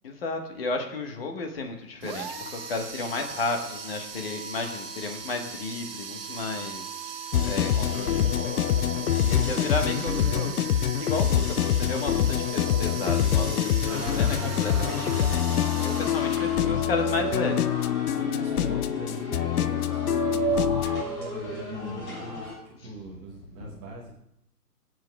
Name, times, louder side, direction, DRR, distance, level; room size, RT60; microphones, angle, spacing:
voice 1, 0.0-7.1 7.4-10.5 11.0-17.6, left 3 dB, 40° left, 4 dB, 1.4 m, -33 dB
sound 1, 2.0-16.9, right 6 dB, 35° right, 1.2 m, -38 dB
sound 2, 7.3-21.0, left 10 dB, 70° left, 0.5 m, -25 dB
voice 2, 7.7-8.4 9.5-10.9 11.3-11.5 16.5-17.6 18.1-24.1, right 1 dB, 10° right, -2 dB, 0.8 m, -41 dB
sound 3, 13.9-22.5, right 2 dB, 20° left, 3.3 m, -34 dB
18.5 x 7.7 x 2.3 m, 0.76 s
hypercardioid pair, 150°, 47 cm